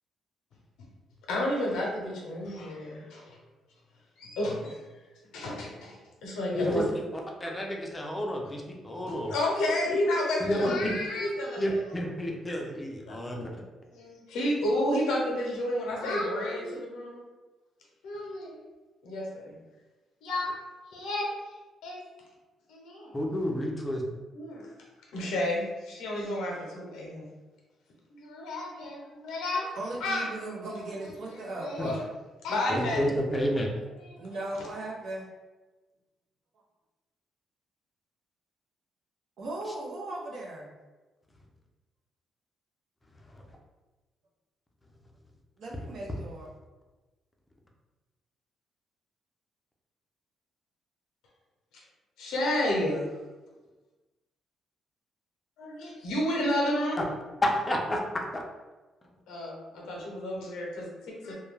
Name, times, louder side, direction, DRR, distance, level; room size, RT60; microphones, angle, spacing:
voice 1, 1.3-3.4 4.2-4.8 5.3-6.8 9.3-11.8 13.1-13.6 13.9-17.2 18.0-18.6 19.0-19.6 20.2-20.5 20.9-21.5 21.8-22.0 22.7-23.1 24.3-24.7 25.1-27.3 28.1-29.7 30.0-30.3 30.7-31.1 31.4-32.0 32.4-33.0 34.0-34.4 52.2-53.1 55.6-57.0 59.3-61.3, left 1 dB, 90° left, -2 dB, 0.6 m, -31 dB
voice 2, 7.4-9.3 10.4-11.0 11.6-13.5 23.1-24.0 31.8-31.9 32.7-33.7 57.0-57.1 57.4-58.0 58.3-58.4, equal, 20° left, 0 dB, 0.5 m, -30 dB
voice 3, 29.7-32.0 34.2-35.3 39.4-40.7 45.6-46.5, right 2 dB, 70° right, -3 dB, 0.7 m, -37 dB
2.2 x 2.2 x 3.2 m, 1.2 s
cardioid pair, 90°, 0 cm